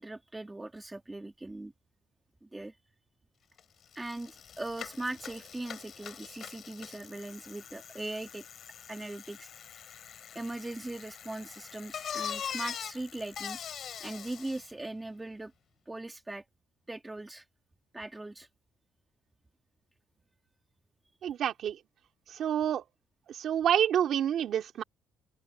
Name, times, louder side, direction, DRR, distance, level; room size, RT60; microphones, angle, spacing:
voice 1, 0.0-1.7 2.4-2.8 4.0-8.4 8.9-9.5 10.3-13.6 14.0-15.5 15.9-16.4 16.9-17.4 17.9-18.5, right 2 dB, 10° right, 1.9 m, -40 dB
Bicycle, 3.6-3.7 3.9-14.7, left 8 dB, 40° left, 3.0 m, -43 dB
voice 2, 21.2-21.8 22.4-22.8 23.3-24.8, right 9 dB, 45° right, 3.1 m, -28 dB
open air
cardioid pair, 165°, 0 cm